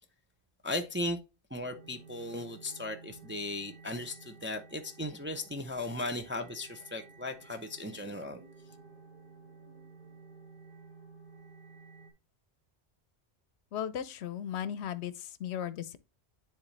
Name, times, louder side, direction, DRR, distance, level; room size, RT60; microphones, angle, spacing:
voice 1, 0.6-1.2 1.5-8.4, left 1 dB, 15° right, 0.5 m, -37 dB
sound 1, 1.6-12.1, right 4 dB, 40° right, 1.2 m, -54 dB
voice 2, 13.7-16.0, left 9 dB, 75° left, 0.9 m, -36 dB
9.8 x 3.7 x 3.2 m
omnidirectional pair, 1.2 m